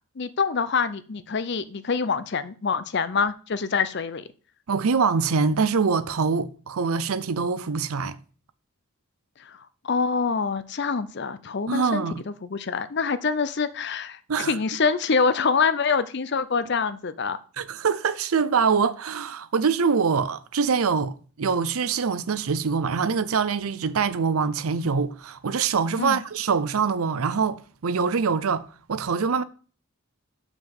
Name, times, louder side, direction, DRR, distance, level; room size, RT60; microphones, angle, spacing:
voice 1, 0.2-4.3 9.5-9.6 9.8-17.4 26.0-26.2, left 5 dB, 50° left, 0.6 m, -25 dB
voice 2, 4.7-8.2 11.7-12.2 14.3-14.5 17.6-29.4, right 5 dB, 80° right, 0.6 m, -24 dB
6.1 x 5.7 x 7.1 m
head